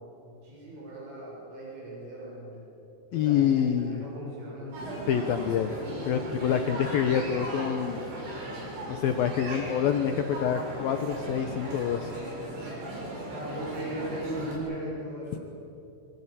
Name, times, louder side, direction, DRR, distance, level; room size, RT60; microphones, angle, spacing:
voice 1, 0.0-2.7 3.1-4.7 6.4-6.9 12.0-12.8 13.3-15.4, right 1 dB, 60° right, -5 dB, 9.4 m, -39 dB
voice 2, 3.1-4.0 5.1-5.7 6.1-8.0 8.9-12.1, left 8 dB, 85° left, 7 dB, 2.0 m, -26 dB
sound 1, 4.7-14.5, right 1 dB, 85° right, 10.5 m, -37 dB
25.5 x 25.0 x 9.0 m, 3.0 s
omnidirectional pair, 5.8 m